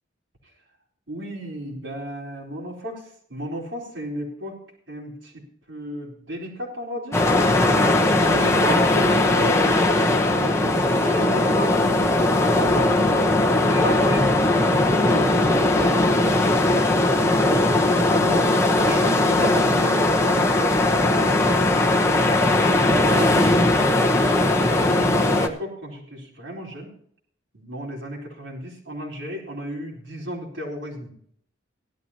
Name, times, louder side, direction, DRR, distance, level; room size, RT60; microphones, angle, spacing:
voice 1, 1.1-4.6 4.9-7.2 8.3-12.1 12.6-13.3 13.6-15.7 16.7-16.9 18.1-18.5 18.9-20.6 22.8-24.1 24.6-26.9 27.5-31.1, equal, 75° right, -2 dB, 4.4 m, -33 dB
sound 1, 7.1-25.5, left 2 dB, 15° left, 1.0 m, -19 dB
17.5 x 12.0 x 2.9 m, 0.65 s
head